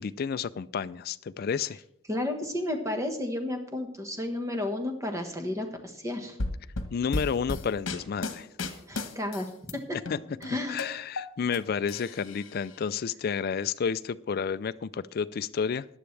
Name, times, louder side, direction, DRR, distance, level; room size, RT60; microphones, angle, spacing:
voice 1, 0.0-1.8 6.9-8.5 10.1-10.2 10.7-15.9, left 6 dB, 45° left, 14 dB, 0.3 m, -31 dB
voice 2, 2.1-6.4 8.9-9.8 10.4-10.9, left 1 dB, 15° right, 4 dB, 1.3 m, -32 dB
sound 1, 6.4-9.7 10.1-11.6 11.9-12.8, left 2 dB, 65° left, 1.2 m, -34 dB
17.0 x 11.0 x 3.3 m, 0.77 s
head